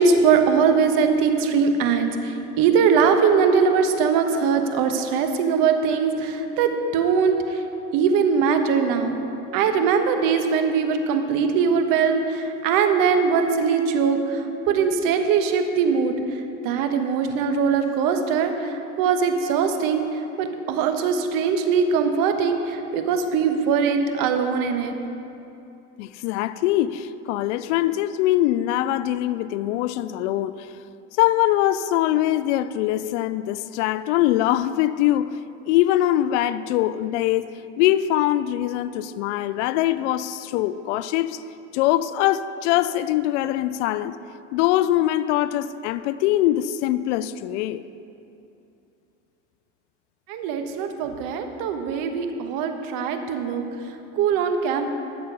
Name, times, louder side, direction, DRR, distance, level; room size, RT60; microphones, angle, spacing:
voice 1, 0.0-7.6 7.9-9.2 9.5-16.1 16.6-24.9 50.3-53.6 54.2-54.9, right 6 dB, 60° right, 1.2 m, -21 dB
voice 2, 26.0-30.7 31.2-35.4 35.7-41.4 41.7-44.1 44.5-47.8, left 13 dB, 70° left, 0.5 m, -22 dB
12.5 x 6.8 x 5.3 m
hypercardioid pair, 85°, 37 cm